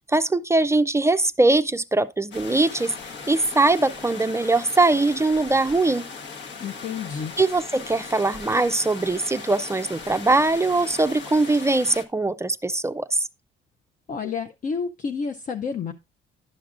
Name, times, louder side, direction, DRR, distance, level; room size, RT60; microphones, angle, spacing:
voice 1, 0.0-2.9 3.3-6.0 7.4-13.3, right 2 dB, 15° right, 0.4 m, -21 dB
sound 1, 2.3-12.0, left 5 dB, 65° left, 1.1 m, -38 dB
voice 2, 6.6-7.3 14.1-15.9, left 5 dB, 45° left, 0.6 m, -30 dB
11.0 x 5.8 x 2.4 m
cardioid pair, 90°, 20 cm